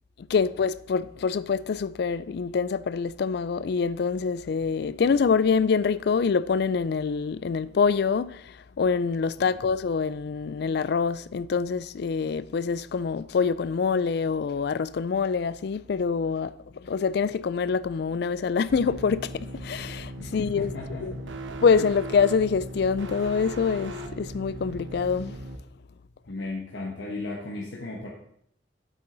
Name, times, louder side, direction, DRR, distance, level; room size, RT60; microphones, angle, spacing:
voice 1, 0.3-20.7 21.0-21.1 21.6-25.4, left 5 dB, 60° left, 0.4 m, -25 dB
sound 1, 18.7-25.6, right 1 dB, 90° right, 1.0 m, -38 dB
voice 2, 20.2-21.4 26.3-28.1, left 2 dB, 75° left, 1.3 m, -36 dB
8.5 x 8.4 x 3.9 m
head